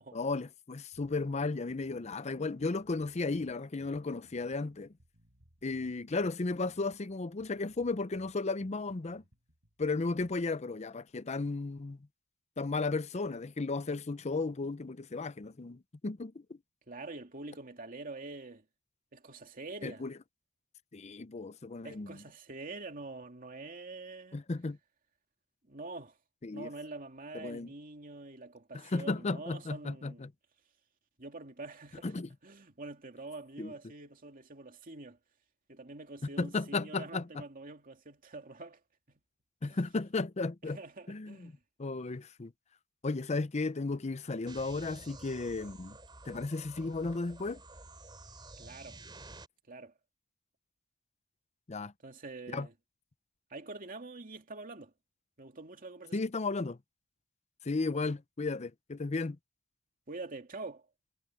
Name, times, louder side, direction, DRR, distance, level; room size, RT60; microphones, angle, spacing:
voice 1, 0.1-4.9 5.6-9.2 9.8-12.0 12.6-16.6 19.8-20.1 20.9-22.2 24.3-24.8 26.4-26.7 27.3-27.7 28.7-30.3 32.0-32.3 33.6-33.7 36.4-37.4 39.6-40.8 41.1-41.5 41.8-42.5 43.0-46.0 46.2-47.6 51.7-51.9 52.5-52.7 56.1-56.8 57.6-59.4, left 3 dB, 35° left, 0.6 m, -34 dB
Bass guitar, 0.9-10.5, equal, 65° right, 7.9 m, -66 dB
voice 2, 16.9-18.6 19.1-20.0 21.8-24.4 25.7-26.2 26.5-30.2 31.2-32.2 32.4-35.2 35.7-38.8 39.6-39.8 40.6-41.6 48.6-49.0 49.7-49.9 52.0-52.7 53.5-54.9 55.4-56.2 60.1-60.9, right 3 dB, 45° right, 2.6 m, -45 dB
sound 1, 44.5-49.5, right 2 dB, 20° right, 3.6 m, -51 dB
head